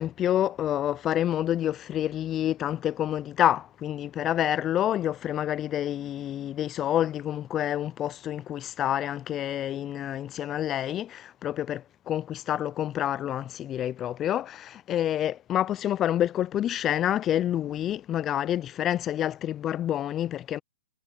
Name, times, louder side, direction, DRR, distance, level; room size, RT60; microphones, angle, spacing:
voice 1, 0.0-20.6, left 11 dB, 25° left, 0.6 m, -28 dB
hypercardioid pair, 125°, 0 cm